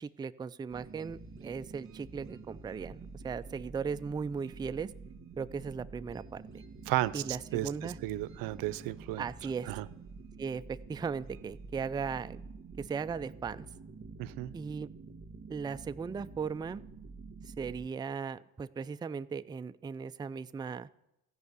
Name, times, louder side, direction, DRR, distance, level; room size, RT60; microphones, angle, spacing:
voice 1, 0.0-4.9 5.4-6.6 7.1-8.0 9.2-9.7 10.4-12.4 12.8-13.7 14.5-14.9 15.5-16.8 17.5-20.9, right 5 dB, 15° right, 13 dB, 0.3 m, -37 dB
sound 1, 0.7-17.9, right 4 dB, 40° right, 1.9 m, -48 dB
voice 2, 6.9-7.2 7.5-9.2 9.7-9.9 14.2-14.5, right 16 dB, 85° right, 17 dB, 0.6 m, -33 dB
14.0 x 5.5 x 8.0 m, 0.87 s
cardioid pair, 80°, 33 cm